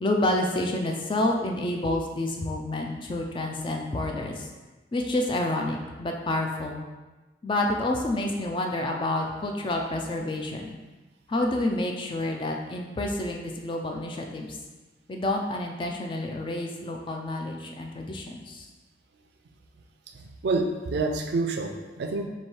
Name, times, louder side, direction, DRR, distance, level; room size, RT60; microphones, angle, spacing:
voice 1, 0.0-4.5 4.9-6.8 7.4-10.8 11.3-14.6 15.1-18.7, left 1 dB, 25° left, 2 dB, 0.3 m, -29 dB
voice 2, 20.1-22.3, right 3 dB, 60° right, 4 dB, 0.4 m, -28 dB
3.1 x 2.7 x 4.3 m, 1.2 s
head